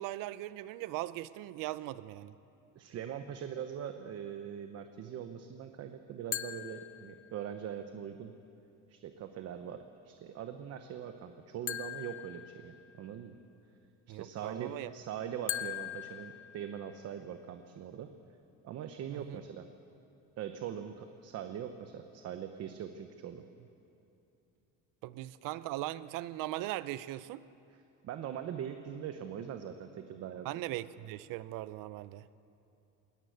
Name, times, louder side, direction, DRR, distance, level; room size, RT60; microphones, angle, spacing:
voice 1, 0.0-2.3 14.1-14.9 19.1-19.4 25.0-27.4 30.4-32.2, right 15 dB, 70° right, 16 dB, 0.7 m, -39 dB
voice 2, 2.7-8.3 8.9-13.4 14.1-18.1 18.6-19.7 20.4-23.4 28.0-30.5, right 9 dB, 45° right, 7 dB, 1.0 m, -42 dB
sound 1, 6.3-7.6 11.7-13.2 15.5-17.2, left 11 dB, 40° left, 0.8 m, -41 dB
20.5 x 19.5 x 8.1 m, 2.8 s
cardioid pair, 160°, 33 cm